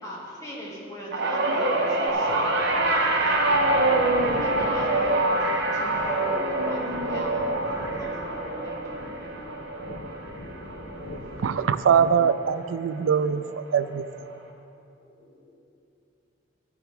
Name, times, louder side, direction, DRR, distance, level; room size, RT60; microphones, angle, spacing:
voice 1, 0.0-5.4 5.7-9.5, equal, 15° left, -5 dB, 2.2 m, -39 dB
sound 1, 1.1-11.6 11.9-12.3 13.4-13.5, right 2 dB, 60° right, 1.2 m, -25 dB
sound 2, 2.1-11.8, left 1 dB, 60° left, 0.8 m, -42 dB
voice 2, 10.1-11.6 15.1-15.5, equal, 40° left, -8 dB, 2.1 m, -52 dB
voice 3, 11.4-14.0, right 7 dB, 85° right, 12 dB, 0.4 m, -22 dB
13.5 x 10.5 x 3.5 m, 2.7 s
head